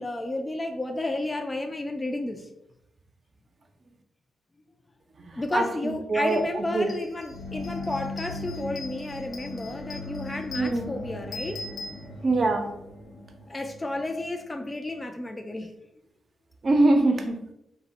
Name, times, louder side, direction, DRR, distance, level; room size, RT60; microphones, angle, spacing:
voice 1, 0.0-2.5 5.3-11.6 13.5-15.7, left 2 dB, 25° left, 5 dB, 0.3 m, -32 dB
voice 2, 5.2-6.9 10.6-10.9 12.2-12.7 16.6-17.5, right 2 dB, 50° right, 5 dB, 0.5 m, -24 dB
sound 1, 6.3-6.4 6.7-12.6, left 2 dB, 50° left, 0.7 m, -43 dB
sound 2, 7.3-15.1, left 2 dB, 85° left, 0.7 m, -39 dB
2.1 x 2.0 x 3.7 m, 0.82 s
supercardioid pair, 50°, 0 cm